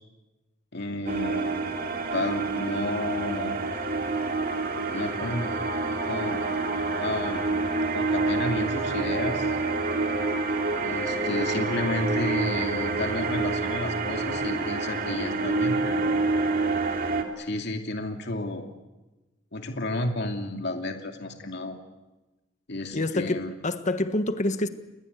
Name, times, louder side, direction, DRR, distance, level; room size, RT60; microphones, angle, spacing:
voice 1, 0.7-1.6 2.1-3.5 4.9-5.6 6.0-6.4 7.0-7.5 7.9-9.5 10.8-16.2 17.4-18.7 19.5-21.8 22.7-23.5, left 1 dB, 55° left, 2.7 m, -32 dB
sound 1, 1.1-17.2, right 3 dB, 45° right, 2.7 m, -27 dB
voice 2, 22.9-24.7, left 2 dB, 35° left, 1.5 m, -27 dB
29.5 x 21.5 x 8.4 m
head